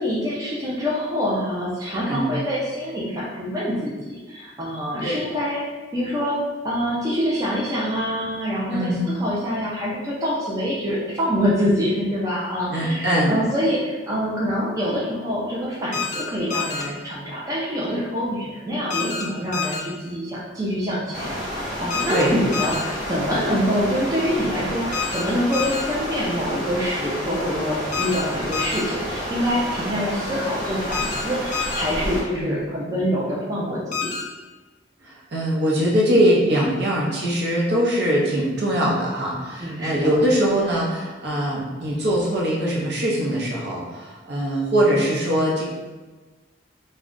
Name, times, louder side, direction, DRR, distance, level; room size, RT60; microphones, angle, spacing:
voice 1, 0.0-5.6 5.9-6.4 6.6-8.9 9.2-34.1 39.6-40.2, equal, 20° right, -6 dB, 0.4 m, -25 dB
voice 2, 12.7-13.4 22.1-22.3 32.4-32.5 35.0-45.6, equal, 60° right, -4 dB, 0.7 m, -22 dB
sound 1, 15.9-16.2 16.5-16.8 18.9-19.2 19.5-19.8 21.9-22.2 22.5-22.8 24.9-25.2 25.5-25.8 27.9-28.2 28.5-28.8 30.9-31.2 31.5-31.8 33.9-34.2, left 6 dB, 40° left, 0.4 m, -27 dB
sound 2, 21.1-32.2, equal, ahead, 1.1 m, -30 dB
2.3 x 2.1 x 3.6 m, 1.2 s
head